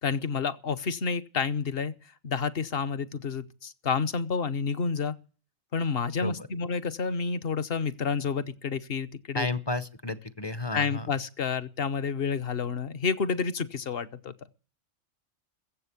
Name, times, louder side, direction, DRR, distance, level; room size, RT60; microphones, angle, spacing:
voice 1, 0.0-1.9 2.2-5.2 5.7-9.5 10.7-14.3, left 5 dB, 50° left, 1.1 m, -29 dB
voice 2, 9.3-11.1, left 2 dB, 25° left, 0.6 m, -32 dB
21.0 x 8.0 x 8.3 m
omnidirectional pair, 1.4 m